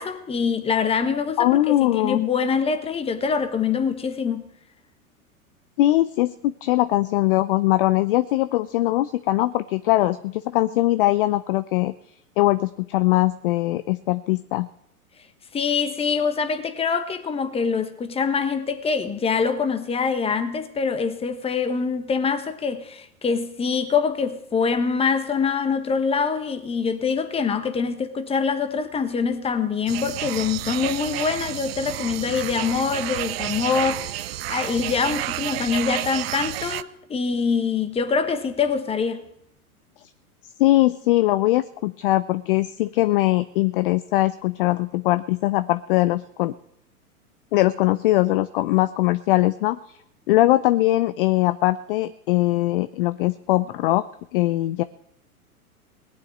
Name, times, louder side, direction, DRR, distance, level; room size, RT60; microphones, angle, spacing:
voice 1, 0.0-4.4 15.5-39.3, left 5 dB, 15° left, 1.2 m, -24 dB
voice 2, 1.4-2.2 5.8-11.9 12.4-14.7 40.6-46.5 47.5-49.8 50.3-54.0 54.3-54.8, left 17 dB, 40° left, 0.5 m, -21 dB
sound 1, 29.9-36.8, right 16 dB, 45° right, 0.6 m, -30 dB
18.5 x 6.9 x 9.1 m
figure-of-eight pair, 105°, 45 cm